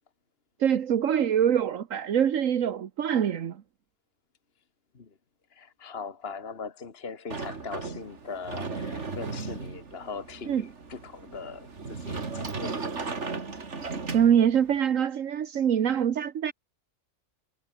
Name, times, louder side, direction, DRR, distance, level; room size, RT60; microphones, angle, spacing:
voice 1, 0.6-3.6 10.5-10.7 14.1-16.5, right 9 dB, 75° right, 1.4 m, -24 dB
voice 2, 5.5-12.7, left 5 dB, 50° left, 1.9 m, -40 dB
Sliding door, 7.3-14.8, right 4 dB, 60° right, 2.6 m, -36 dB
omnidirectional pair, 1.4 m